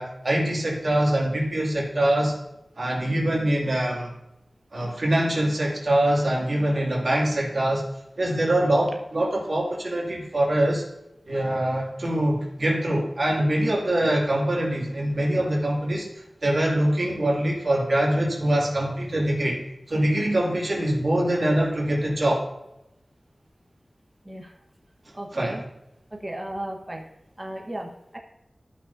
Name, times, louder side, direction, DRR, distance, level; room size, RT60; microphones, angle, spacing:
voice 1, 0.0-2.3 2.8-4.1 4.7-7.9 8.2-10.8 11.3-16.1 16.4-19.6 19.9-22.5 25.3-25.6, right 1 dB, 60° right, -3 dB, 2.4 m, -24 dB
voice 2, 24.2-24.6 25.1-25.7 26.1-27.1 27.4-28.2, right 1 dB, 25° right, 1 dB, 1.3 m, -35 dB
13.5 x 6.0 x 2.7 m, 0.89 s
wide cardioid pair, 55°, 0 cm